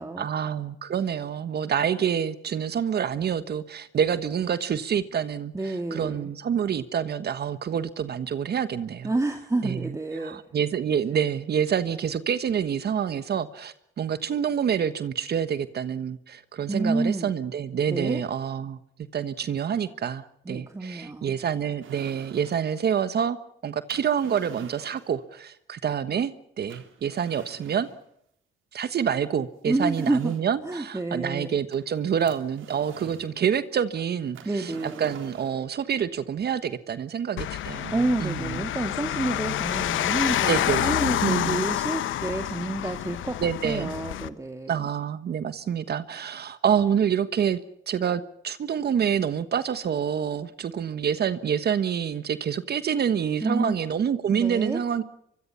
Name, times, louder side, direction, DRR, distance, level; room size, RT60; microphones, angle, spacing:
voice 1, 0.2-9.1 9.6-9.9 10.2-18.8 19.1-23.4 23.6-26.3 26.6-27.9 28.7-38.6 40.5-40.9 41.2-41.6 43.4-43.9 44.7-47.6 47.9-55.0, right 8 dB, 55° right, 12 dB, 1.4 m, -27 dB
voice 2, 5.5-6.3 9.0-10.4 16.7-17.3 17.9-18.2 20.5-21.4 29.7-30.3 30.6-31.6 34.5-35.1 37.9-44.8 53.4-53.7 54.3-54.8, right 2 dB, 15° right, 6 dB, 2.0 m, -29 dB
sound 1, 21.8-22.8 23.9-25.2 26.7-28.0 29.1-29.2 29.7-30.6 31.7-33.4 34.3-35.7, right 7 dB, 80° right, 3.5 m, -46 dB
sound 2, 37.4-44.3, left 12 dB, 80° left, 1.1 m, -28 dB
24.0 x 24.0 x 5.8 m, 0.73 s
cardioid pair, 90°, 20 cm